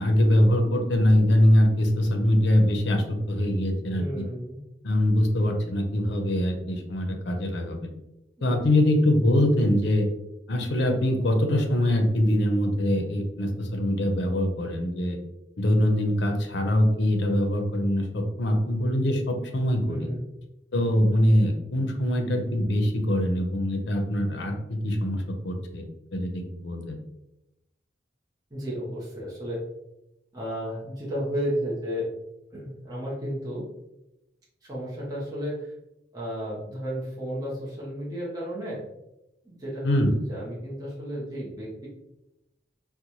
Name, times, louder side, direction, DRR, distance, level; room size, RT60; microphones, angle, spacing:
voice 1, 0.0-4.2 4.8-7.9 8.4-10.1 10.5-15.2 15.6-20.1 20.7-27.0 39.8-40.1, left 1 dB, 70° left, 4 dB, 0.5 m, -23 dB
voice 2, 3.9-4.6 8.4-8.8 19.9-20.3 28.5-29.6 30.3-32.1 32.5-33.6 34.6-35.7 36.1-38.8 39.4-40.0 40.3-41.9, equal, 20° right, -6 dB, 0.7 m, -33 dB
3.9 x 2.1 x 2.9 m, 0.90 s
head